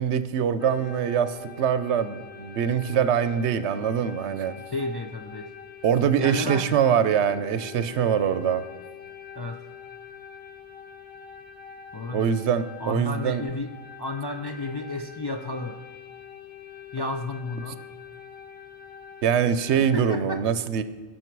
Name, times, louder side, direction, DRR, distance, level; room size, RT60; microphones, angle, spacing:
voice 1, 0.0-4.5 5.8-8.6 12.1-13.4 19.2-20.8, right 8 dB, 80° right, 13 dB, 0.9 m, -23 dB
sound 1, 0.6-20.2, left 8 dB, 70° left, 1.3 m, -45 dB
voice 2, 4.7-5.5 6.2-6.9 9.3-9.6 11.9-12.3 12.8-13.7 14.0-15.8 16.9-17.8 19.8-20.4, left 2 dB, 35° left, 4 dB, 0.4 m, -32 dB
18.0 x 6.1 x 4.6 m, 1.3 s
omnidirectional pair, 1.1 m